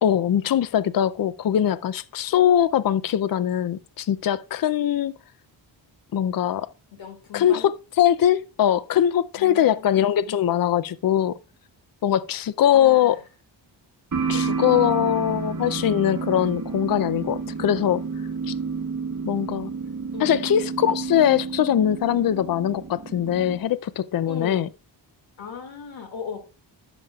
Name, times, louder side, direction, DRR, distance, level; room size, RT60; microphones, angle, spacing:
voice 1, 0.0-5.1 6.1-6.7 7.3-7.6 8.0-11.3 12.0-13.2 14.3-18.0 18.5-18.6 19.2-19.7 20.2-24.7, left 10 dB, 50° left, 0.5 m, -21 dB
voice 2, 7.0-7.7 9.4-10.3 12.7-13.2 14.3-15.8 20.1-20.6 24.3-24.7 25.4-26.4, left 6 dB, 85° left, 2.3 m, -39 dB
sound 1, 14.1-23.6, right 5 dB, 40° right, 1.3 m, -30 dB
11.5 x 7.1 x 2.4 m
cardioid pair, 85°, 46 cm